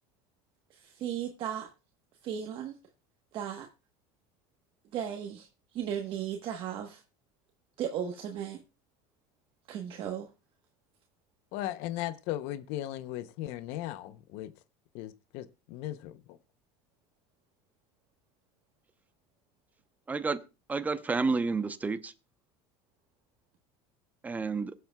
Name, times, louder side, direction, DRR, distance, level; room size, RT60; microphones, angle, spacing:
voice 1, 0.7-1.7 2.2-2.8 3.3-3.7 4.9-5.5 5.7-7.0 7.8-8.6 9.7-10.3, right 9 dB, 50° right, 1.2 m, -35 dB
voice 2, 11.5-14.5 14.9-16.4, left 14 dB, 65° left, 0.7 m, -37 dB
voice 3, 20.1-20.4 20.7-22.1 24.2-24.7, right 4 dB, 15° right, 0.8 m, -30 dB
22.0 x 7.7 x 2.3 m
supercardioid pair, 130°, 12 cm